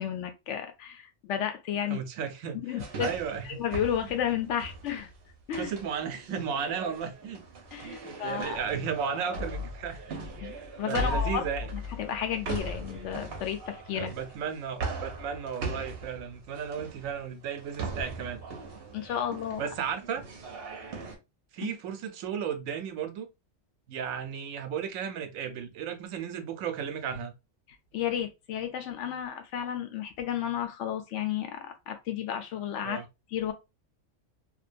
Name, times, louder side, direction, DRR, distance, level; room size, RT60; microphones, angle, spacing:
voice 1, 0.0-2.0 2.6-3.1 3.4-5.1 5.5-5.7 7.7-8.6 10.4-11.4 11.7-14.1 18.9-19.6 21.6-21.7 27.9-33.0 33.3-33.5, left 9 dB, 70° left, 0.8 m, -32 dB
voice 2, 1.8-3.6 5.6-7.4 7.8-10.2 10.9-11.7 13.9-18.4 19.6-20.2 21.5-23.3 23.9-27.3 32.8-33.1, right 7 dB, 85° right, 1.0 m, -34 dB
sound 1, 2.8-21.2, right 1 dB, 55° right, 0.8 m, -39 dB
2.6 x 2.2 x 2.4 m
omnidirectional pair, 1.4 m